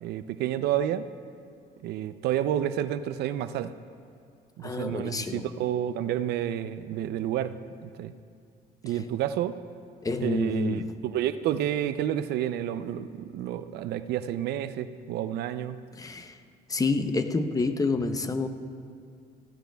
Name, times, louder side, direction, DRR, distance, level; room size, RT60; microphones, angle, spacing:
voice 1, 0.0-1.1 1.8-3.7 4.6-7.6 7.8-8.1 8.8-9.6 10.2-15.8, right 11 dB, 75° right, 12 dB, 0.5 m, -30 dB
voice 2, 4.6-5.5 10.0-10.9 16.0-16.4 16.7-18.5, left 3 dB, 20° left, 8 dB, 0.7 m, -28 dB
17.5 x 15.0 x 2.3 m, 2.3 s
cardioid pair, 110°, 17 cm